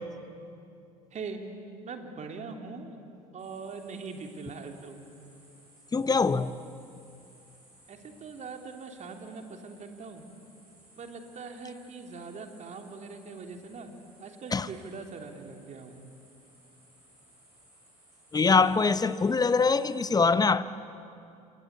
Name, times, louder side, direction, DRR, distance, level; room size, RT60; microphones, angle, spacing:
voice 1, 1.8-3.0 3.3-5.0 7.9-10.3 11.0-13.9 14.2-16.1, right 4 dB, 40° right, 3.2 m, -42 dB
sound 1, 3.4-20.1, right 1 dB, 90° right, 7.8 m, -60 dB
voice 2, 5.9-6.5 14.5-14.7 18.3-20.6, left 4 dB, 20° left, 0.9 m, -23 dB
28.5 x 23.0 x 8.2 m
figure-of-eight pair, 60°, 19 cm